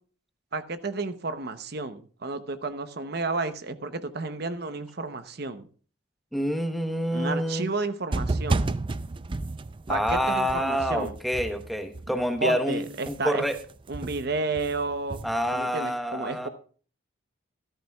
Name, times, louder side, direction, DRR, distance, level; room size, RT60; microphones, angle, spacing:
voice 1, 0.5-5.7 7.1-8.8 9.9-11.1 12.4-13.4 13.9-15.2 15.5-16.5, right 3 dB, 50° right, 10 dB, 0.8 m, -31 dB
voice 2, 6.3-7.7 9.9-13.6 15.2-16.5, equal, ahead, 6 dB, 1.0 m, -27 dB
sound 1, 8.1-12.4 12.7-15.6, right 2 dB, 25° right, 0.4 m, -32 dB
13.5 x 13.5 x 2.3 m, 0.42 s
head